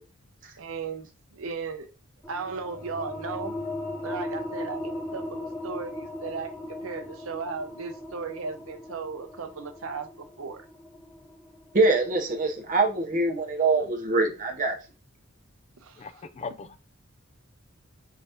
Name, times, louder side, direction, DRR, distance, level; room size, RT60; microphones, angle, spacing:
voice 1, 0.6-1.1 1.4-1.9 2.3-3.5 4.0-10.1 10.4-10.6 15.8-16.0 16.4-16.5, right 5 dB, 80° right, 0.7 m, -36 dB
sound 1, 2.2-13.5, left 1 dB, 10° left, 0.8 m, -38 dB
voice 2, 11.7-14.8, right 3 dB, 40° right, 0.7 m, -24 dB
voice 3, 16.0-16.8, left 5 dB, 30° left, 0.3 m, -38 dB
4.7 x 2.8 x 3.4 m
head